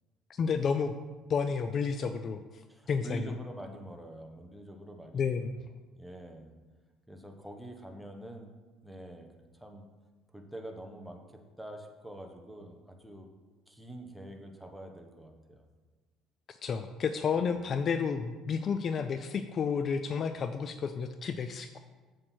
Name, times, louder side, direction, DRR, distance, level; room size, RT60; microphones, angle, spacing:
voice 1, 0.3-0.9 1.3-2.4 2.9-3.4 5.1-5.6 16.5-21.8, left 6 dB, 40° left, 9 dB, 0.4 m, -31 dB
voice 2, 2.7-5.4 6.0-6.5 7.1-8.6 8.8-9.9 10.3-13.3 13.7-15.6 17.4-17.5, right 1 dB, ahead, 3 dB, 1.2 m, -46 dB
7.8 x 7.5 x 4.5 m, 1.3 s
cardioid pair, 115°, 0 cm